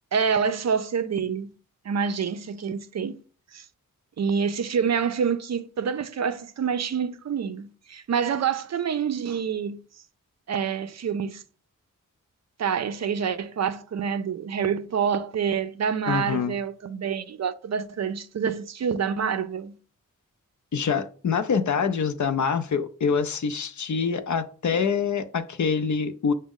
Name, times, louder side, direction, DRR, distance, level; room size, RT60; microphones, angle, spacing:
voice 1, 0.1-1.5 1.8-3.2 3.5-3.6 4.2-9.8 10.5-11.4 12.6-19.7, right 7 dB, 55° right, 0.4 m, -27 dB
voice 2, 16.1-16.6 20.7-26.3, left 6 dB, 60° left, 0.5 m, -25 dB
6.0 x 2.1 x 3.6 m
cardioid pair, 55°, 33 cm